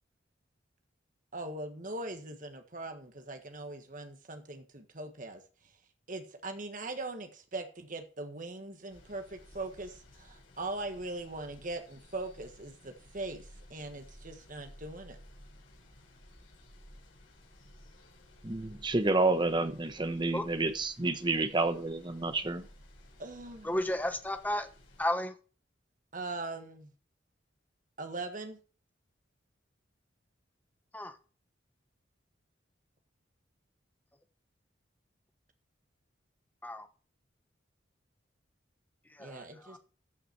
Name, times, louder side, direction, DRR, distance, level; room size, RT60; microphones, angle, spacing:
voice 1, 1.3-5.4 6.1-15.2 23.2-23.8 26.1-26.9 28.0-28.6 39.2-39.8, right 2 dB, 45° right, 1.6 m, -41 dB
sound 1, 8.9-25.1, equal, 85° left, 4.7 m, -56 dB
voice 2, 18.4-22.6, right 2 dB, 25° right, 1.0 m, -29 dB
voice 3, 23.6-24.7 25.0-25.3 30.9-31.2 36.6-36.9 39.1-39.8, left 1 dB, 10° left, 1.0 m, -33 dB
13.5 x 5.8 x 4.6 m
head